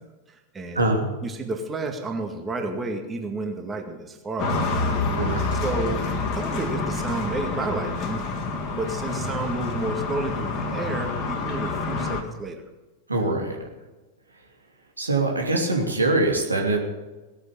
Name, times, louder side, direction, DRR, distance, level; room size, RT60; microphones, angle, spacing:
voice 1, 0.5-0.9 1.2-4.6 5.6-6.1 6.4-8.2 8.7-12.6, right 3 dB, 20° right, 3 dB, 2.0 m, -31 dB
sound 1, 4.4-12.2, left 3 dB, 35° left, 2.1 m, -27 dB
voice 2, 5.2-5.5 13.1-13.6 15.0-16.8, right 2 dB, 80° right, 1 dB, 2.9 m, -23 dB
18.0 x 9.3 x 7.2 m, 1.1 s
figure-of-eight pair, 90°, 0 cm